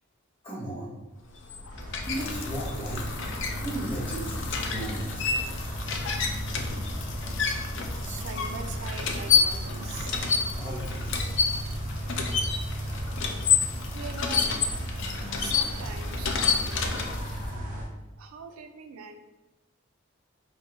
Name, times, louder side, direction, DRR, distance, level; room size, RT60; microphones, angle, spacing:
voice 1, 0.4-0.9 2.1-3.0 3.6-5.3 10.6-11.3, right 1 dB, 25° left, -8 dB, 1.4 m, -36 dB
sound 1, 1.2-17.5, left 5 dB, 60° left, 0.4 m, -30 dB
sound 2, 1.7-17.8, equal, 40° right, 1.1 m, -35 dB
voice 2, 7.8-10.4 13.9-17.0 18.2-19.2, right 5 dB, 85° right, 6 dB, 0.4 m, -43 dB
4.5 x 2.6 x 2.6 m, 1.0 s
head